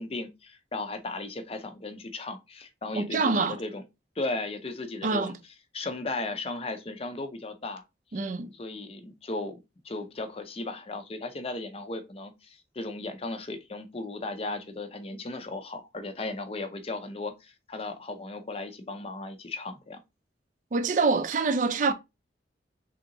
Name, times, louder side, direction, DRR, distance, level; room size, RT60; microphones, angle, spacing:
voice 1, 0.0-3.8 4.2-5.3 5.7-7.8 8.5-9.6 9.8-20.0, left 2 dB, 30° left, 0.6 m, -36 dB
voice 2, 3.0-3.6 5.0-5.4 8.1-8.5 20.7-21.9, right 4 dB, 45° right, 0.4 m, -25 dB
3.5 x 2.8 x 3.8 m
head